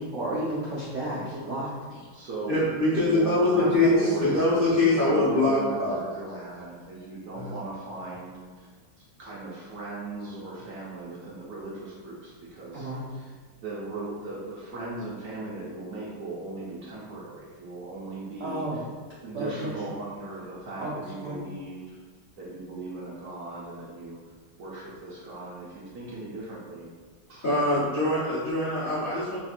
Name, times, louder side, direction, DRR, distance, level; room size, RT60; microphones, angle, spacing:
voice 1, 0.0-2.0 3.5-4.4 12.7-13.0 18.4-18.8 19.3-19.7 20.8-20.9 21.2-21.4, right 1 dB, 90° right, -8 dB, 0.6 m, -32 dB
voice 2, 1.1-1.5 2.1-2.6 2.9-8.7 9.2-13.3 13.6-18.8 19.2-22.0 22.4-24.2 24.6-26.9 27.3-27.5 28.1-28.3, right 2 dB, 65° right, -5 dB, 0.9 m, -38 dB
voice 3, 2.5-5.9 7.3-7.5 27.4-29.4, left 2 dB, 85° left, -10 dB, 0.4 m, -23 dB
3.3 x 2.4 x 4.2 m, 1.5 s
omnidirectional pair, 2.2 m